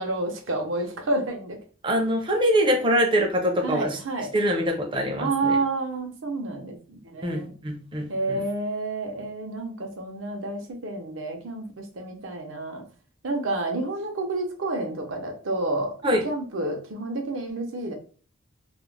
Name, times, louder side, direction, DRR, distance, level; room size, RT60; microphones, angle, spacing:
voice 1, 0.0-1.6 3.6-4.3 5.2-7.5 8.1-12.8 13.2-15.9 16.2-17.9, right 2 dB, 70° right, 3 dB, 0.6 m, -29 dB
voice 2, 1.8-4.0 4.3-5.6 7.2-8.4 16.0-16.2, equal, 25° right, 2 dB, 0.5 m, -24 dB
2.4 x 2.0 x 3.1 m, 0.40 s
head